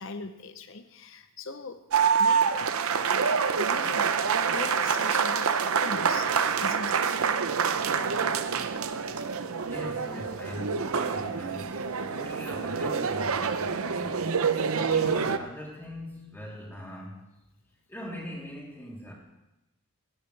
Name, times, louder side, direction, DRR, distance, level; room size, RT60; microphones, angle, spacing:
voice 1, 0.0-1.8 2.2-2.5 3.6-4.1 4.5-6.3 6.6-7.0, left 4 dB, 60° left, 9 dB, 0.7 m, -39 dB
sound 1, 1.9-15.4, right 6 dB, 70° right, 0.7 m, -27 dB
voice 2, 9.6-11.8 12.1-14.3 14.7-17.2 17.9-19.1, equal, 10° left, -4 dB, 3.2 m, -41 dB
16.5 x 15.5 x 3.3 m, 0.94 s
head